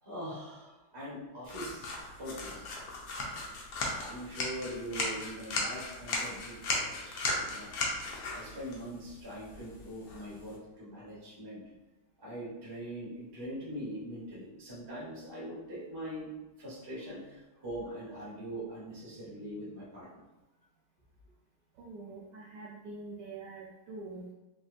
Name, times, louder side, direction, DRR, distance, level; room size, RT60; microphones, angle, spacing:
voice 1, 0.0-2.8 3.8-7.7 8.3-11.6 12.2-16.3 16.6-20.2, equal, 30° right, -8 dB, 0.4 m, -42 dB
sound 1, 1.5-10.6, left 2 dB, 75° left, 0.8 m, -37 dB
voice 2, 21.7-24.3, right 3 dB, 75° right, -5 dB, 1.0 m, -45 dB
4.4 x 2.4 x 2.5 m, 1.1 s
omnidirectional pair, 2.4 m